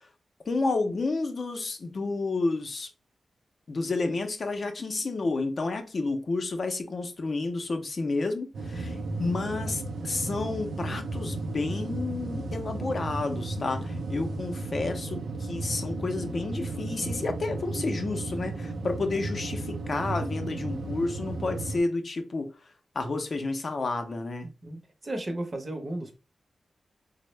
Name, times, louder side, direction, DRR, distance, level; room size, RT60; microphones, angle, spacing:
voice 1, 0.5-2.9 3.7-22.5 22.9-24.5, left 3 dB, 45° left, 0.5 m, -30 dB
sound 1, 8.5-21.8, right 2 dB, 75° right, 0.4 m, -34 dB
voice 2, 24.4-26.2, right 1 dB, 30° right, 0.7 m, -35 dB
3.5 x 2.0 x 3.1 m
wide cardioid pair, 120°, 0 cm